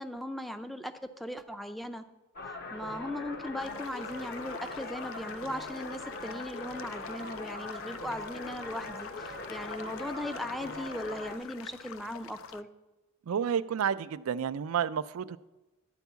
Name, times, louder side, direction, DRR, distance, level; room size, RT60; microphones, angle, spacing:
voice 1, 0.0-2.1 2.7-12.7, left 1 dB, ahead, 9 dB, 0.4 m, -38 dB
sound 1, 2.4-11.4, left 2 dB, 45° left, 0.8 m, -41 dB
sound 2, 3.6-12.6, left 8 dB, 70° left, 0.4 m, -48 dB
voice 2, 13.3-15.4, right 8 dB, 80° right, 16 dB, 0.4 m, -30 dB
12.0 x 4.6 x 8.1 m, 1.1 s
head